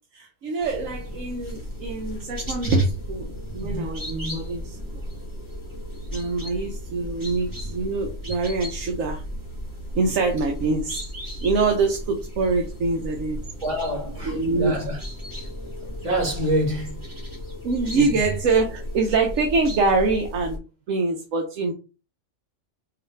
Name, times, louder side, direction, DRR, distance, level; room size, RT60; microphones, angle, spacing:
voice 1, 0.1-5.0 6.1-9.2 9.9-11.0 11.4-13.4 14.2-14.8 17.6-20.6 20.9-21.7, right 3 dB, 80° right, 1.1 m, -24 dB
sound 1, 0.6-20.6, equal, 15° right, 1.4 m, -35 dB
voice 2, 13.6-15.0 16.0-17.0 17.9-18.2, equal, 65° right, 2.1 m, -26 dB
4.7 x 2.5 x 3.1 m
omnidirectional pair, 1.3 m